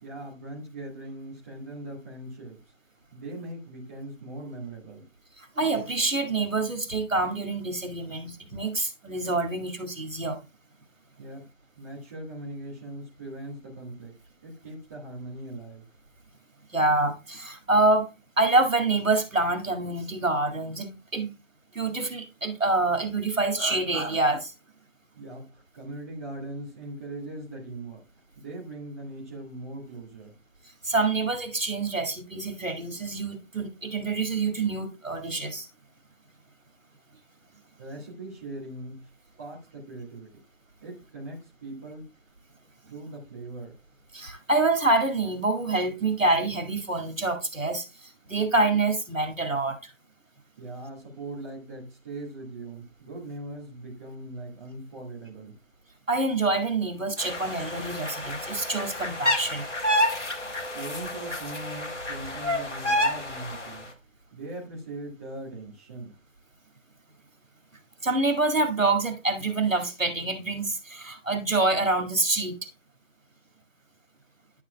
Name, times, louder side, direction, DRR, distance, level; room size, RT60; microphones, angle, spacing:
voice 1, 0.0-2.6 3.1-5.0 11.2-11.5 11.8-14.1 14.4-15.8 25.1-28.0 28.3-30.3 37.8-39.1 39.4-40.4 40.8-42.1 42.9-43.7 50.6-55.5 60.7-63.9 64.3-66.1, right 2 dB, 10° right, 1.4 m, -40 dB
voice 2, 5.4-10.4 16.7-18.1 18.4-21.3 21.7-24.5 30.8-35.7 44.1-49.9 56.1-59.7 68.0-72.6, right 2 dB, 85° right, 2.1 m, -26 dB
sound 1, 57.2-63.8, left 1 dB, 65° left, 2.1 m, -29 dB
11.0 x 7.4 x 2.2 m
figure-of-eight pair, 155°, 38 cm